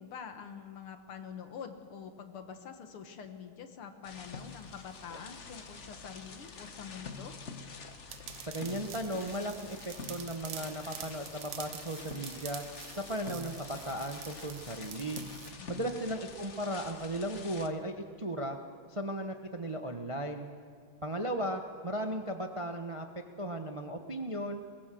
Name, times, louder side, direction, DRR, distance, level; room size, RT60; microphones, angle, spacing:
voice 1, 0.0-7.3 15.6-15.9, left 7 dB, 80° left, 7 dB, 2.4 m, -46 dB
sound 1, 4.0-17.7, left 4 dB, 40° left, 1.3 m, -47 dB
sound 2, 8.1-15.5, right 11 dB, 80° right, 1.7 m, -47 dB
voice 2, 8.4-12.6 12.9-15.2 15.7-18.6 18.9-20.5 21.0-23.1 23.4-24.6, right 1 dB, 25° right, 5 dB, 0.6 m, -36 dB
22.0 x 20.0 x 7.7 m, 2.1 s
omnidirectional pair, 2.4 m